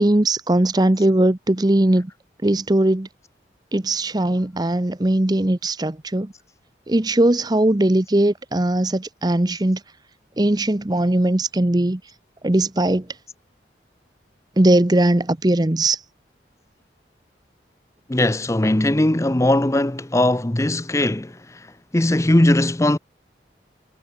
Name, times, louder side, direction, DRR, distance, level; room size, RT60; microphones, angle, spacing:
voice 1, 0.0-2.1 2.4-3.1 3.7-6.3 6.9-9.8 10.4-12.0 12.4-13.0 14.6-16.0, right 1 dB, 20° right, 0.8 m, -19 dB
voice 2, 18.1-21.7 21.9-23.0, left 1 dB, 15° left, 0.6 m, -19 dB
head